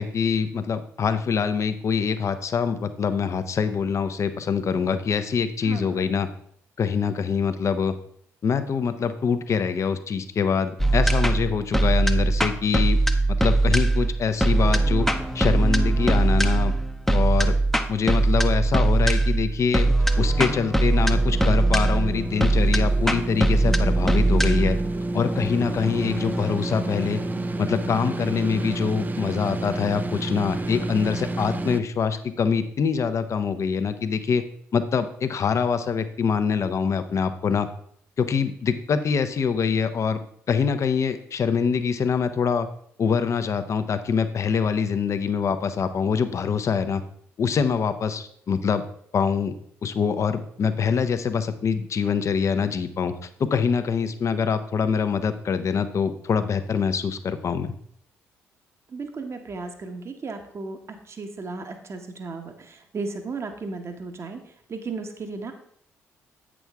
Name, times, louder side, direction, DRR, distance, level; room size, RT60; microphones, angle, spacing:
voice 1, 0.0-6.3 6.8-7.9 8.4-13.0 13.4-15.1 15.3-16.7 17.1-17.5 17.9-19.9 20.2-24.8 25.1-27.2 27.6-34.4 34.7-37.7 38.2-40.2 40.5-42.7 43.0-47.0 47.4-48.8 49.1-49.5 49.8-57.7, left 6 dB, 50° left, 10 dB, 0.7 m, -24 dB
voice 2, 5.6-6.0 58.9-60.8 61.1-64.4 64.7-65.5, right 4 dB, 45° right, 5 dB, 1.0 m, -35 dB
sound 1, 10.8-27.9, right 2 dB, 5° left, 0.7 m, -22 dB
sound 2, 21.1-31.8, right 2 dB, 30° right, 0.4 m, -30 dB
8.0 x 6.2 x 3.5 m, 0.65 s
hypercardioid pair, 50°, 6 cm